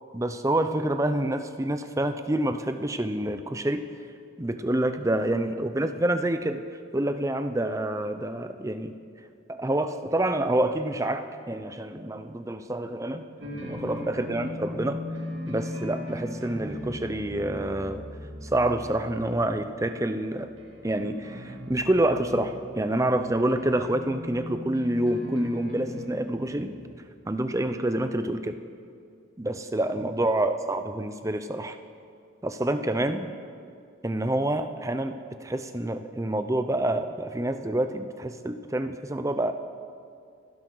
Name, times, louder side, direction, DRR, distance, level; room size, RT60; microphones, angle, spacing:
voice 1, 0.1-3.9 4.4-6.6 6.9-8.9 9.5-13.2 13.6-15.0 15.5-18.0 18.4-20.5 20.8-26.7 27.3-28.6 29.4-31.8 32.4-33.3 34.0-39.5, right 1 dB, 15° right, 9 dB, 0.6 m, -27 dB
sound 1, 13.4-27.0, left 1 dB, 75° right, 2.4 m, -39 dB
27.5 x 11.0 x 3.9 m, 2.4 s
head